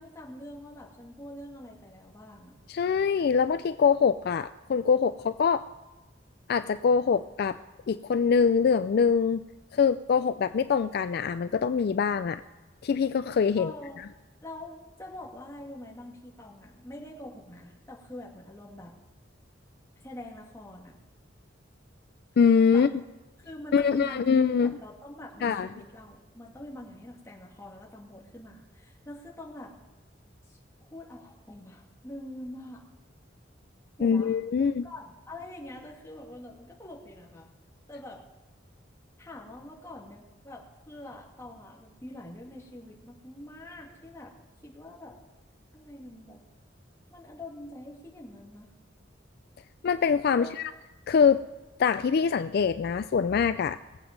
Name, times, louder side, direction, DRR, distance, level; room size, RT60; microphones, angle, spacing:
voice 1, 0.0-2.6 13.6-14.0 14.4-18.9 20.0-21.0 22.7-22.9 23.5-29.7 30.5-32.8 34.0-37.5 37.9-38.2 39.2-44.3 44.6-45.2 45.7-46.4 47.1-48.7 50.3-50.5, left 1 dB, 15° left, -2 dB, 2.3 m, -44 dB
voice 2, 2.7-5.6 6.5-7.6 7.9-9.4 9.7-12.4 12.8-13.7 22.4-22.9 23.7-24.8 25.4-25.7 34.0-34.8 49.8-50.7 51.1-51.4 51.8-53.8, left 6 dB, 55° left, 12 dB, 0.3 m, -24 dB
20.5 x 8.0 x 5.2 m, 1.2 s
head